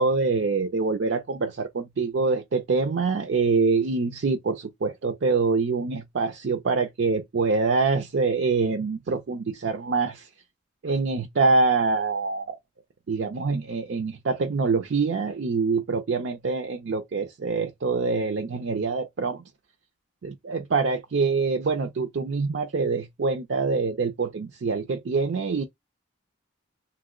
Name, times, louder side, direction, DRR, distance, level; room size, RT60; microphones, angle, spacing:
voice 1, 0.0-10.3 10.8-12.6 13.1-19.4 20.2-25.6, right 4 dB, 65° right, 0.4 m, -25 dB
2.9 x 2.0 x 3.6 m
head